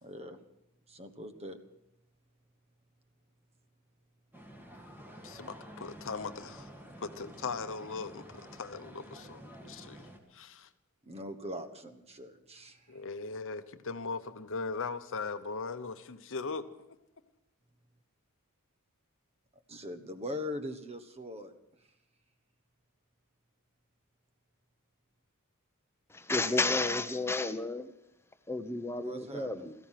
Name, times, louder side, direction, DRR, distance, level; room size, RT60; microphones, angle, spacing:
voice 1, 0.0-0.4 0.9-1.6 11.1-13.0 19.7-21.5 28.9-29.7, left 1 dB, 30° right, 1.2 m, -41 dB
sound 1, 4.3-10.2, right 1 dB, 10° right, 2.0 m, -50 dB
voice 2, 5.2-6.7 7.0-10.7 12.9-16.7, left 4 dB, 60° left, 0.9 m, -39 dB
voice 3, 26.1-27.9 28.5-29.7, left 3 dB, 10° left, 0.8 m, -31 dB
17.0 x 14.5 x 5.8 m
head